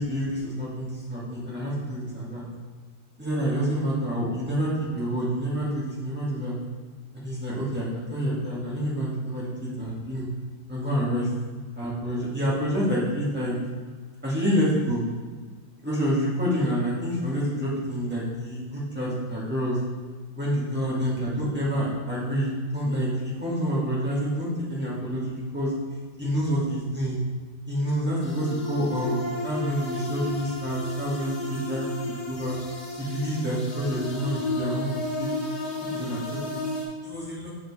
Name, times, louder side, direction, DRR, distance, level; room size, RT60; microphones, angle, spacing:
voice 1, 0.0-2.4 3.2-6.5 7.1-10.3 10.7-11.3 11.8-13.6 14.2-15.0 15.8-19.8 20.3-25.7 26.2-27.2 27.7-31.8 32.3-32.6 33.0-35.3 35.8-36.2 36.5-36.6 37.0-37.5, equal, 5° right, -7 dB, 1.6 m, -28 dB
sound 1, 28.2-36.8, left 2 dB, 60° left, 1.9 m, -33 dB
6.0 x 5.4 x 4.2 m, 1.5 s
omnidirectional pair, 2.1 m